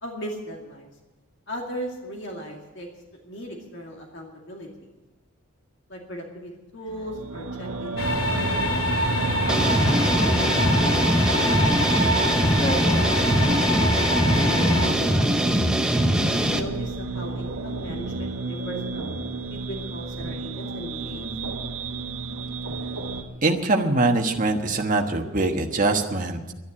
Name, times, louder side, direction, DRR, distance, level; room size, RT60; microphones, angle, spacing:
voice 1, 0.0-0.9 1.5-2.9 3.2-4.7 5.9-8.7 9.4-11.1 12.4-15.8 16.3-19.1 19.5-21.3, equal, 55° left, 0 dB, 2.4 m, -37 dB
sound 1, 6.9-23.2, right 3 dB, 80° right, 1.2 m, -32 dB
sound 2, 8.0-14.9, left 1 dB, 70° left, 2.7 m, -25 dB
sound 3, 9.5-16.6, equal, 5° right, 0.7 m, -22 dB
voice 2, 23.4-26.5, right 2 dB, 35° right, 3 dB, 1.3 m, -23 dB
11.5 x 10.5 x 9.8 m, 1.1 s
head